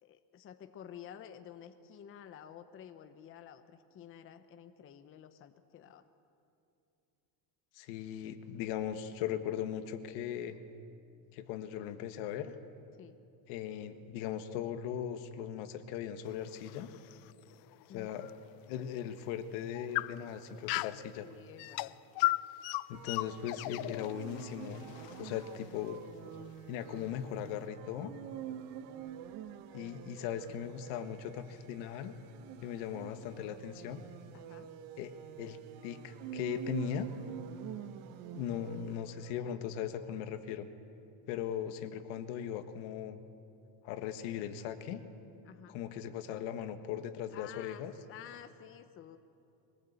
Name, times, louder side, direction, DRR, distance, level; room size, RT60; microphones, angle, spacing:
voice 1, 0.0-6.0 13.0-13.2 17.9-18.2 21.2-21.9 34.3-34.7 45.4-45.7 47.3-49.2, left 9 dB, 30° left, 9 dB, 0.8 m, -51 dB
voice 2, 7.7-10.6 11.3-12.5 13.5-16.9 17.9-18.3 18.7-21.3 22.9-24.9 25.2-26.0 26.7-28.1 29.7-32.2 32.6-34.0 35.0-35.6 35.8-37.1 38.3-40.7 41.3-43.2 43.8-45.0 45.7-47.9, left 9 dB, 75° left, 9 dB, 1.6 m, -39 dB
sound 1, 16.3-18.4 18.8-18.9 19.5-21.1 21.6-25.9, left 19 dB, 55° left, 0.5 m, -37 dB
sound 2, 22.9-39.5, right 10 dB, 65° right, 1.2 m, -47 dB
23.5 x 18.5 x 8.2 m, 2.6 s
cardioid pair, 155°, 43 cm